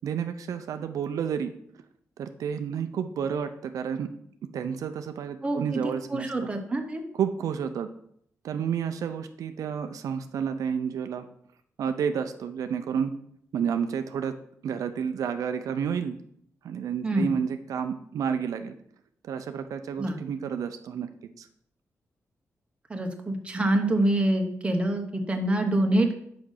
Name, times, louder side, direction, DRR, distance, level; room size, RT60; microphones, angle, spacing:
voice 1, 0.0-1.5 2.2-4.1 4.5-6.5 7.2-7.9 8.4-11.2 11.8-13.1 13.5-14.3 14.6-16.1 16.6-18.7 19.2-21.1 21.4-21.5, right 7 dB, 85° right, 8 dB, 0.5 m, -30 dB
voice 2, 5.4-7.0 17.0-17.3 20.0-20.2 22.9-26.2, right 1 dB, 20° right, 4 dB, 1.0 m, -26 dB
5.9 x 5.2 x 6.4 m, 0.68 s
wide cardioid pair, 130°, 6 cm